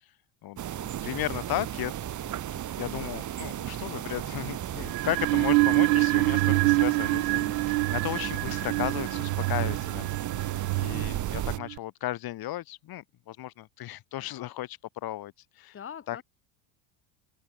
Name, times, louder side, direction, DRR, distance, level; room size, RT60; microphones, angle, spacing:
voice 1, 0.4-1.9 2.5-7.4 7.9-10.1 10.4-15.8 16.1-16.2, left 15 dB, 45° left, 3.4 m, -35 dB
sound 1, 0.6-11.6, right 11 dB, 35° right, 3.2 m, -35 dB
voice 2, 2.8-3.1 7.3-7.7 15.7-16.2, left 8 dB, 25° left, 3.0 m, -43 dB
sound 2, 4.9-11.8, right 26 dB, 80° right, 0.9 m, -26 dB
supercardioid pair, 120°, 49 cm